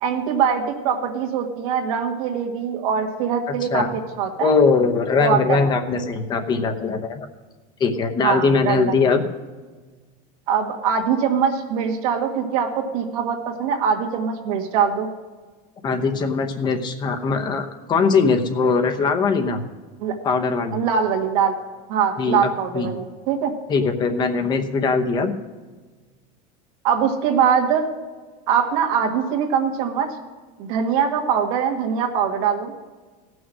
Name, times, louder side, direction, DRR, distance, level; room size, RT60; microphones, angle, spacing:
voice 1, 0.0-3.9 4.2-4.5 5.2-5.7 8.2-8.8 10.5-15.1 20.0-20.1 20.7-21.5 21.9-23.5 26.8-27.9 28.5-30.1 30.6-32.7, right 7 dB, 70° right, 2 dB, 1.8 m, -22 dB
voice 2, 3.5-3.9 4.4-7.3 7.8-9.2 15.8-19.6 20.2-20.8 22.2-22.9 23.7-25.3, left 4 dB, 25° left, 6 dB, 0.9 m, -21 dB
16.0 x 6.2 x 6.2 m, 1.4 s
cardioid pair, 165°, 19 cm